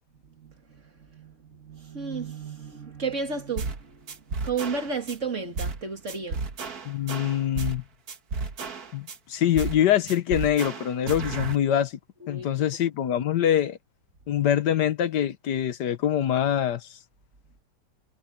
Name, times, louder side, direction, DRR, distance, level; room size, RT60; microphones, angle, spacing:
voice 1, 0.2-6.4 12.2-12.5, right 5 dB, 45° right, 2.5 m, -33 dB
sound 1, 3.6-3.8 4.1-5.2 5.6-5.8 6.1-7.8 8.1-9.2 9.6-9.8 10.1-11.6, right 3 dB, 60° right, 2.1 m, -32 dB
voice 2, 6.8-7.8 8.9-12.0 12.3-13.8 14.3-16.9, left 10 dB, 75° left, 1.5 m, -24 dB
omnidirectional pair, 1.9 m